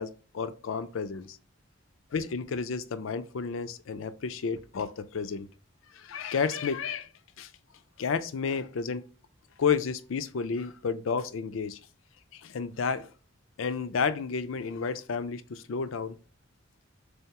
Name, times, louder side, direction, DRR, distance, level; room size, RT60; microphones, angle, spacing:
voice 1, 0.0-1.4 2.1-5.5 5.9-7.1 7.4-7.5 8.0-9.0 9.6-11.8 12.3-13.1 13.6-16.2, left 5 dB, 80° left, 0.4 m, -31 dB
3.8 x 3.4 x 2.8 m
head